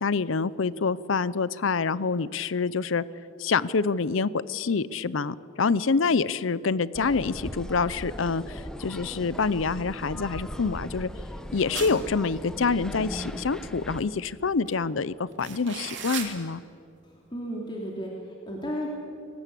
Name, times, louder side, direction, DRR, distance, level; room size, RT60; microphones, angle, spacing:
voice 1, 0.0-3.0 3.4-11.1 11.5-16.6, left 4 dB, 90° left, 18 dB, 0.6 m, -26 dB
sound 1, 6.9-14.0, equal, 5° left, 1.1 m, -38 dB
sound 2, 11.7-12.3 14.7-14.8 15.3-16.3, right 7 dB, 70° right, 2.8 m, -35 dB
voice 2, 17.0-18.9, equal, 25° left, -2 dB, 2.9 m, -34 dB
23.0 x 19.5 x 8.4 m, 2.7 s
head